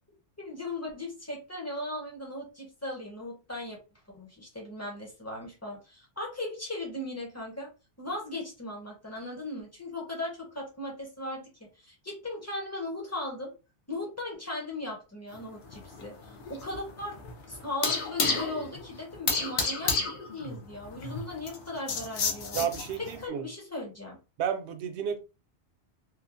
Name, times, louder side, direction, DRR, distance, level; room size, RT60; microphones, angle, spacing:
voice 1, 0.4-3.8 4.1-7.7 8.0-11.5 11.8-13.5 13.9-17.2 17.5-19.9 20.3-22.6 23.0-24.2, left 1 dB, 15° left, 0.6 m, -37 dB
sound 1, 15.3-23.2, left 4 dB, 65° left, 0.9 m, -32 dB
voice 2, 22.5-23.4 24.4-25.2, right 8 dB, 75° right, 0.8 m, -31 dB
3.1 x 2.1 x 2.4 m
omnidirectional pair, 1.2 m